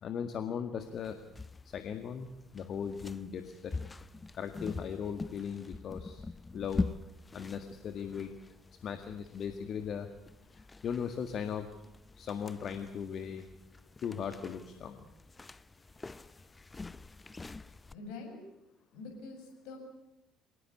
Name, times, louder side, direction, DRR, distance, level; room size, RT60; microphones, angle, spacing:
voice 1, 0.0-1.2 1.7-3.7 4.3-6.3 6.5-6.9 7.3-8.3 8.8-10.1 10.8-11.7 12.2-13.4 14.0-15.0, left 7 dB, 45° left, 8 dB, 1.8 m, -38 dB
sound 1, 0.8-17.9, left 3 dB, 20° left, 0.8 m, -44 dB
voice 2, 17.9-18.4 18.9-19.8, left 3 dB, 60° left, 4 dB, 7.2 m, -45 dB
26.0 x 19.0 x 8.5 m, 0.86 s
figure-of-eight pair, 55°, 0 cm